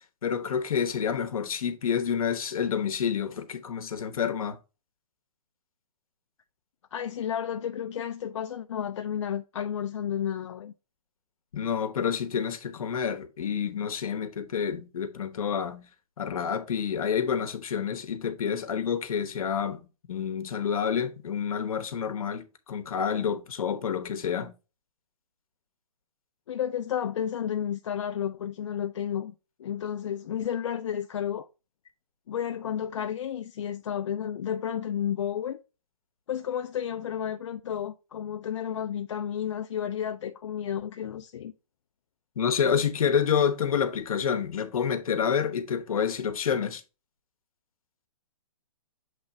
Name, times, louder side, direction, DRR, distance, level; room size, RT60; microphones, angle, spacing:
voice 1, 0.2-4.6 11.5-15.9 16.2-24.5 42.4-46.8, left 7 dB, 65° left, 1.1 m, -28 dB
voice 2, 6.9-10.7 26.5-29.3 29.6-31.5 32.3-35.6 36.3-41.5, left 9 dB, 50° left, 0.4 m, -32 dB
7.4 x 3.2 x 4.2 m
hypercardioid pair, 160°, 19 cm